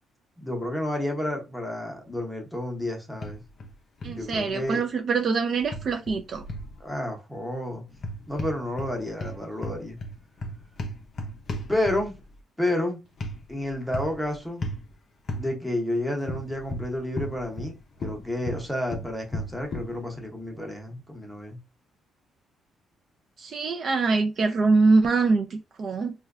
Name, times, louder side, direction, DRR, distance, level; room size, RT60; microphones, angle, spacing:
voice 1, 0.4-3.4 4.1-4.8 6.8-7.8 8.3-10.0 11.7-12.1 12.6-13.0 13.5-14.7 15.3-17.7 18.0-21.6, left 1 dB, ahead, 0.8 m, -30 dB
sound 1, 3.2-3.7 4.0-4.5 5.7-6.7 7.9-8.9 9.2-12.2 13.2-13.4 13.9-14.2 14.6-14.8 15.3-15.5 16.3-17.7 18.0-19.9, left 1 dB, 40° left, 0.5 m, -34 dB
voice 2, 4.0-6.4 23.4-26.1, right 4 dB, 45° right, 0.4 m, -24 dB
4.3 x 2.2 x 2.4 m
cardioid pair, 155°, 0 cm